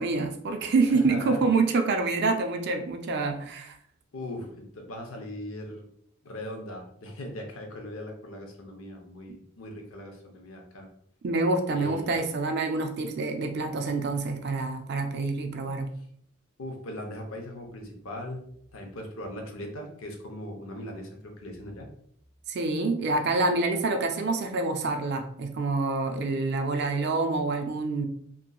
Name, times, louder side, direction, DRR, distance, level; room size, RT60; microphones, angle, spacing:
voice 1, 0.0-3.8 11.2-15.9 22.5-28.1, right 3 dB, 50° right, 5 dB, 0.3 m, -27 dB
voice 2, 0.9-1.4 4.1-5.9 6.2-10.9 11.7-12.2 16.6-18.4 18.7-21.9, left 1 dB, 70° left, 2 dB, 0.6 m, -39 dB
2.9 x 2.6 x 2.2 m, 0.67 s
head